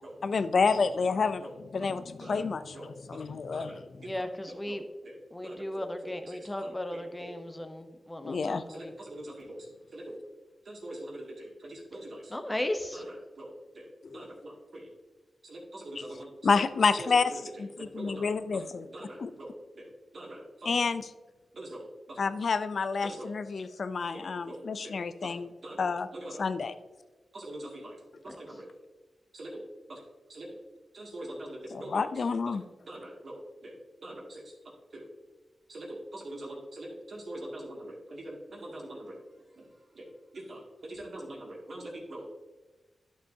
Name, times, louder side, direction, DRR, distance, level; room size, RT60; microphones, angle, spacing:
voice 1, 0.2-1.4 1.7-3.7 8.2-8.6 14.0-14.2 16.4-17.3 17.6-18.9 19.2-19.3 20.7-21.0 22.2-25.5 25.8-26.1 26.4-26.7 31.7-32.6, left 4 dB, 65° left, 12 dB, 0.5 m, -29 dB
voice 2, 1.4-2.5 2.7-4.3 4.7-7.4 8.7-10.2 10.6-12.6 12.9-14.9 15.4-20.8 21.5-22.3 23.0-23.4 24.1-26.4 27.3-28.7 29.3-29.6 29.9-30.0 30.3-30.6 30.9-32.6 32.8-34.5 34.9-35.1 35.7-39.2 39.6-42.3, right 1 dB, 60° right, -2 dB, 2.3 m, -44 dB
voice 3, 4.0-4.8 5.3-8.9 12.3-13.0 28.3-28.4, left 1 dB, 15° left, 6 dB, 0.8 m, -36 dB
11.0 x 6.7 x 2.8 m, 1.2 s
cardioid pair, 60°, 0 cm